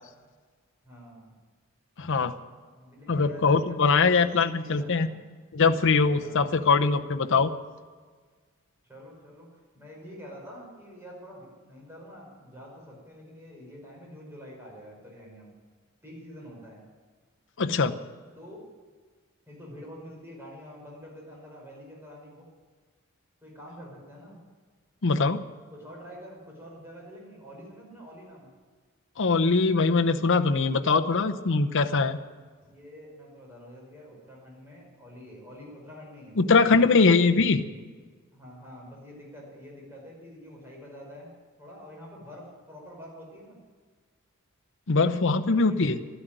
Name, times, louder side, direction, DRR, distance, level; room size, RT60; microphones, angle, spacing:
voice 1, 0.8-1.3 2.7-5.2 6.2-6.7 8.8-15.5 16.0-16.8 18.4-18.6 19.5-22.5 23.4-24.4 25.7-28.5 32.6-37.1 38.3-41.3 41.6-43.6 45.5-46.1, equal, 10° right, -3 dB, 5.4 m, -46 dB
voice 2, 2.0-2.4 3.1-5.1 5.5-7.5 17.6-18.0 25.0-25.4 29.2-32.2 36.4-37.7 44.9-46.0, left 4 dB, 60° left, 7 dB, 0.8 m, -22 dB
12.5 x 11.5 x 9.1 m, 1.5 s
head